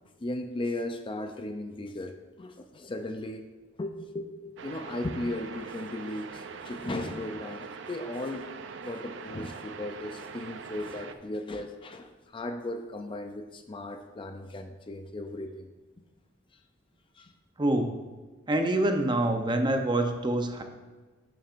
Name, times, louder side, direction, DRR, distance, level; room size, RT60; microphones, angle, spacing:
voice 1, 0.0-3.4 3.8-8.5 8.8-15.7 17.2-17.3, left 1 dB, 25° left, 6 dB, 0.4 m, -36 dB
sound 1, 4.6-11.1, right 5 dB, 70° right, 0.5 m, -42 dB
voice 2, 17.6-18.0 18.5-20.6, right 1 dB, 25° right, 5 dB, 0.7 m, -26 dB
10.5 x 7.3 x 2.5 m, 1.3 s
head